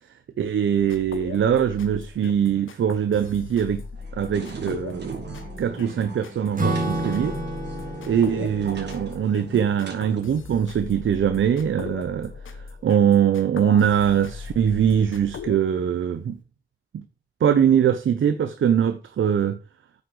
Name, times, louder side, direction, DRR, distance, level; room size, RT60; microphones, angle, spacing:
voice 1, 0.4-3.8 4.1-7.4 8.1-12.3 12.8-16.4 16.9-17.0 17.4-19.6, right 8 dB, 75° right, 0.8 m, -22 dB
sound 1, 0.8-15.6, left 5 dB, 80° left, 1.2 m, -39 dB
sound 2, 4.0-10.2, right 4 dB, 60° right, 3.5 m, -40 dB
Acoustic guitar / Strum, 6.5-11.3, right 2 dB, 40° right, 3.5 m, -31 dB
9.4 x 6.6 x 4.9 m
wide cardioid pair, 95°, 20 cm